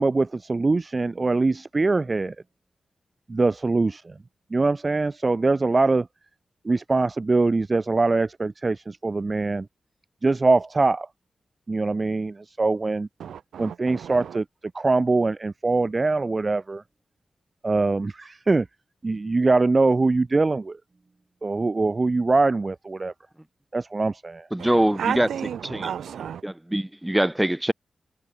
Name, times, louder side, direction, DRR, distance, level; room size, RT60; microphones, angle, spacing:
voice 1, 0.0-2.3 3.3-4.1 4.5-6.1 6.6-9.7 10.2-11.1 11.7-13.1 13.6-14.4 14.7-16.8 17.6-18.7 19.0-20.8 21.4-23.1 23.7-24.5, right 3 dB, 40° right, 0.7 m, -23 dB
voice 2, 13.2-14.3 24.6-24.7 25.0-26.4, right 8 dB, 90° right, 1.4 m, -32 dB
voice 3, 24.5-25.3 25.6-25.9 26.4-27.7, right 1 dB, 10° right, 2.8 m, -23 dB
cardioid pair, 50°, 0 cm